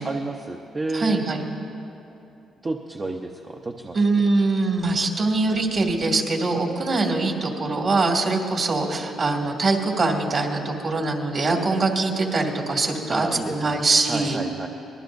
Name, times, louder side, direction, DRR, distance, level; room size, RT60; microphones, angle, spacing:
voice 1, 0.0-1.3 2.6-4.0 13.1-13.8 14.1-14.7, right 2 dB, 30° right, 2 dB, 0.8 m, -30 dB
voice 2, 0.9-1.4 3.9-14.4, right 3 dB, 45° right, 0 dB, 2.4 m, -23 dB
24.5 x 20.0 x 2.6 m, 2.9 s
cardioid pair, 90°, 0 cm